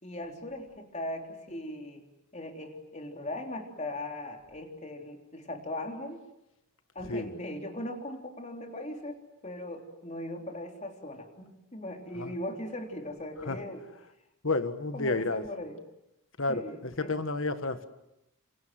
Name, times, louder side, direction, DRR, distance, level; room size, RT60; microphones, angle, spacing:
voice 1, 0.0-2.0 2.3-6.2 7.0-13.8 14.9-15.8 16.5-17.1, left 1 dB, 30° left, 4 dB, 3.6 m, -39 dB
voice 2, 14.4-15.4 16.4-17.9, left 3 dB, 65° left, 10 dB, 1.7 m, -31 dB
27.5 x 27.5 x 7.7 m, 0.86 s
head